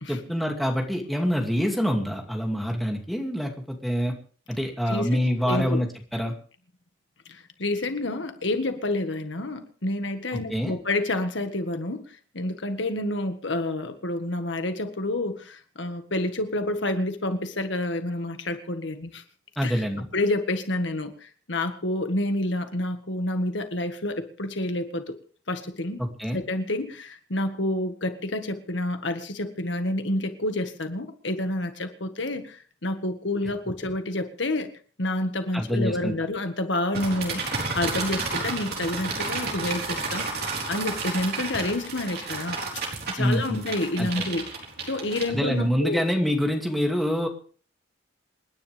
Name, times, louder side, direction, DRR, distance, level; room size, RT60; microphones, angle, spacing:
voice 1, 0.1-4.1 4.5-6.3 10.3-10.7 19.6-20.1 26.2-26.4 35.5-36.1 43.2-43.6 44.0-44.2 45.3-47.3, equal, ahead, 1 dB, 2.5 m, -26 dB
voice 2, 4.9-5.8 7.3-19.2 19.6-19.8 20.1-25.1 25.5-26.0 26.3-34.7 35.0-37.4 37.7-42.6 43.1-44.5 44.8-46.0, left 1 dB, 70° left, 7 dB, 1.7 m, -29 dB
sound 1, 36.9-45.7, right 3 dB, 55° right, 4.1 m, -32 dB
27.5 x 10.5 x 3.5 m, 0.42 s
head